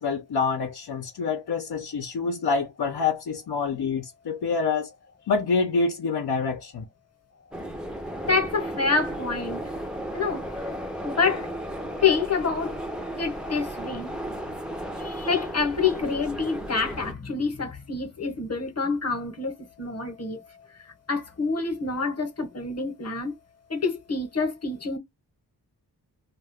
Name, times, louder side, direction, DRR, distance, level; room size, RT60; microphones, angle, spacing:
voice 1, 0.0-4.9 5.3-6.8, left 4 dB, 65° left, 0.8 m, -26 dB
sound 1, 7.5-17.1, equal, ahead, 0.6 m, -34 dB
voice 2, 8.2-9.6 10.1-10.7 11.0-11.5 12.0-12.8 13.2-14.1 15.0-20.4 21.1-23.3 23.7-25.0, left 4 dB, 35° left, 1.1 m, -27 dB
2.3 x 2.3 x 3.4 m
wide cardioid pair, 125°, 41 cm